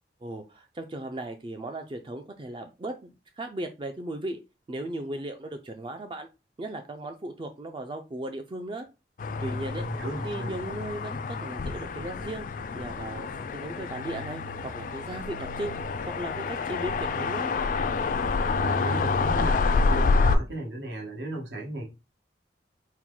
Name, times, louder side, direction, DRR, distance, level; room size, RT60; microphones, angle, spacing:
voice 1, 0.2-4.4 4.7-6.3 6.6-8.9 9.4-9.9 10.2-12.5 12.7-15.8 16.1-17.5, right 1 dB, 30° right, 0.4 m, -36 dB
sound 1, 9.2-20.4, left 4 dB, 50° left, 0.3 m, -28 dB
voice 2, 9.7-10.6 18.6-21.8, right 1 dB, 85° right, 1.5 m, -35 dB
4.4 x 2.1 x 3.8 m
head